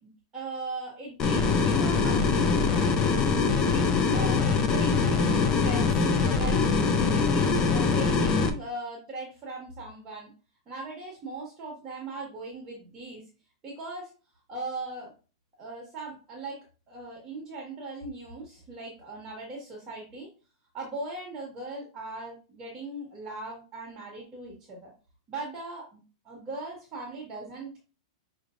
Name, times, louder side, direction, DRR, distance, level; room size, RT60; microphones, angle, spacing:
voice 1, 0.0-3.3 3.7-6.1 6.3-6.6 7.0-10.3 10.7-13.2 13.6-14.1 14.5-15.1 15.6-16.6 16.9-20.3 20.7-24.9 25.3-26.0 26.2-27.8, right 2 dB, 25° right, -2 dB, 1.7 m, -39 dB
sound 1, 1.2-8.5, left 4 dB, 25° left, 0.7 m, -23 dB
6.2 x 3.2 x 2.5 m, 0.34 s
hypercardioid pair, 140°, 3 cm